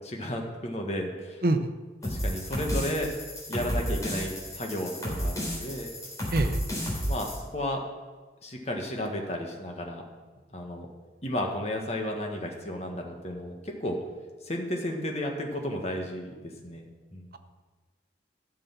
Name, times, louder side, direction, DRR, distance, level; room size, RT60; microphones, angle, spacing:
voice 1, 0.0-1.4 2.0-3.1 3.5-5.9 7.0-7.8 8.4-10.0 10.5-10.9 11.2-14.0 14.4-16.3 16.6-16.9 17.1-17.4, left 1 dB, 35° left, 2 dB, 1.6 m, -33 dB
voice 2, 1.4-1.7 6.3-6.6, right 2 dB, 55° right, 8 dB, 0.8 m, -25 dB
sound 1, 2.0-7.4, equal, 20° left, 3.8 m, -32 dB
13.0 x 6.9 x 5.9 m, 1.4 s
head